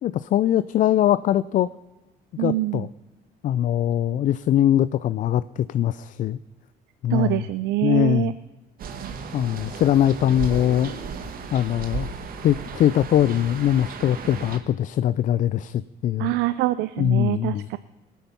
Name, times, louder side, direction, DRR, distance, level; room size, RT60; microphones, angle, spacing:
voice 1, 0.0-1.7 2.4-2.9 3.4-6.4 7.0-7.4 7.8-8.3 9.3-10.9 11.5-12.1 12.4-16.3 17.0-17.7, left 11 dB, 50° left, 16 dB, 0.4 m, -22 dB
voice 2, 2.4-2.9 7.1-8.3 9.0-9.1 16.2-17.8, right 17 dB, 85° right, 14 dB, 0.5 m, -25 dB
sound 1, 8.8-14.6, right 5 dB, 60° right, 1.7 m, -35 dB
19.5 x 9.3 x 5.7 m, 1.1 s
cardioid pair, 110°, 17 cm